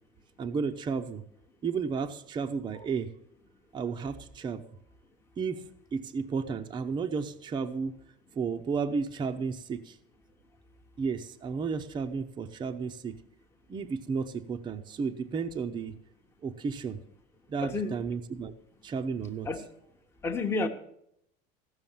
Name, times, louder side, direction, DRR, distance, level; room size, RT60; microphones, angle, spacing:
voice 1, 0.4-1.2 1.6-3.1 3.7-4.6 5.4-7.9 8.4-9.9 11.0-13.2 13.7-15.9 16.4-17.0 17.5-18.5 18.8-19.5, right 5 dB, 20° right, 0.7 m, -33 dB
voice 2, 17.6-18.0 19.4-19.6 20.2-20.7, left 3 dB, 10° left, 1.0 m, -30 dB
15.0 x 6.4 x 7.2 m
supercardioid pair, 140°, 21 cm